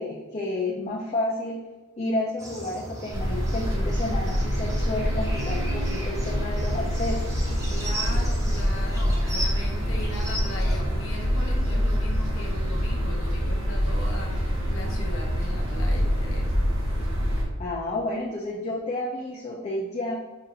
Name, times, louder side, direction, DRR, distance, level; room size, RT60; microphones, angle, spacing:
voice 1, 0.0-1.6 2.0-7.3 8.2-8.3 17.6-20.2, left 2 dB, 35° left, -3 dB, 0.5 m, -30 dB
sound 1, 2.4-10.8, right 1 dB, 15° right, 0.8 m, -37 dB
sound 2, 3.1-17.4, equal, 75° right, 1.1 m, -26 dB
voice 2, 7.7-16.6, left 1 dB, 75° left, 0 dB, 0.7 m, -39 dB
5.0 x 2.5 x 2.8 m, 1.3 s
head